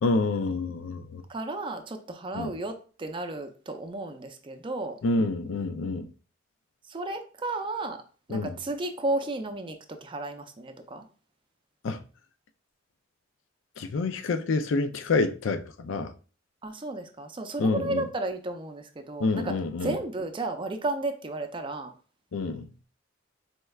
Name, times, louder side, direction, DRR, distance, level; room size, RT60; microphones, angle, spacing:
voice 1, 0.0-1.2 2.3-2.5 5.0-6.1 8.3-8.5 11.8-12.0 13.8-16.1 17.6-18.1 19.2-19.9 22.3-22.7, left 3 dB, 80° left, 0.4 m, -27 dB
voice 2, 1.3-5.0 6.9-8.0 8.3-11.0 16.6-19.5 19.8-21.9, right 2 dB, 25° right, 0.5 m, -33 dB
4.3 x 3.2 x 2.3 m
head